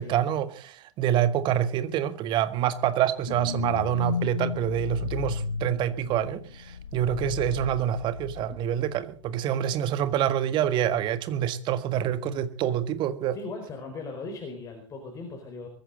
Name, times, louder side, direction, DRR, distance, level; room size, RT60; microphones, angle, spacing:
voice 1, 0.0-13.4, right 10 dB, 30° right, 1.6 m, -26 dB
sound 1, 3.3-8.9 9.3-9.4, left 6 dB, 65° left, 1.2 m, -34 dB
voice 2, 13.3-15.7, left 3 dB, 20° left, 4.4 m, -38 dB
22.5 x 14.5 x 4.0 m
figure-of-eight pair, 100°, 16 cm